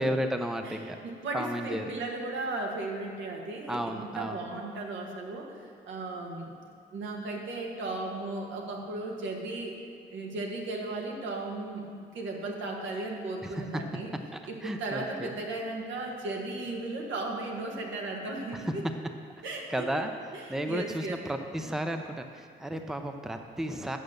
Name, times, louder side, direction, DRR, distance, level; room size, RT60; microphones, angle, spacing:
voice 1, 0.0-1.0 1.3-1.9 3.7-4.5 13.4-13.8 14.6-15.3 19.7-20.1 20.5-24.0, right 1 dB, ahead, 6 dB, 0.6 m, -33 dB
voice 2, 0.6-6.6 6.9-9.8 10.1-14.1 14.5-18.8 19.4-19.9 20.3-21.1, right 2 dB, 75° right, 0 dB, 1.6 m, -36 dB
8.9 x 6.4 x 6.5 m, 2.3 s
cardioid pair, 90°, 20 cm